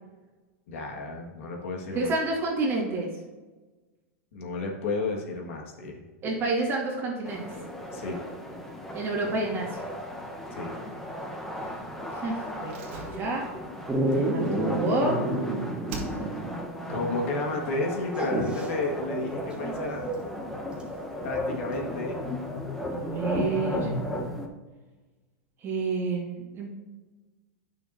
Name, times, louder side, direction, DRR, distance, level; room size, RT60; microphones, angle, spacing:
voice 1, 0.7-2.1 4.3-6.0 7.9-8.2 10.6-10.8 16.9-20.0 21.2-22.2, left 3 dB, 70° left, 0 dB, 1.8 m, -32 dB
voice 2, 1.9-3.1 6.2-7.4 8.9-9.8 12.1-13.5 14.1-15.2 16.8-17.2 22.9-23.9 25.6-26.7, right 2 dB, 35° right, -3 dB, 1.8 m, -29 dB
sound 1, 7.2-24.5, left 1 dB, 5° left, 1.0 m, -35 dB
Slam, 12.7-15.4 15.9-16.6 16.9-17.0, right 3 dB, 65° right, 1.8 m, -42 dB
Dog, 13.9-16.6 16.9-17.0 18.1-18.7 20.8-20.9, right 1 dB, 15° right, 1.5 m, -28 dB
9.6 x 6.4 x 2.7 m, 1.2 s
hypercardioid pair, 120°, 7 cm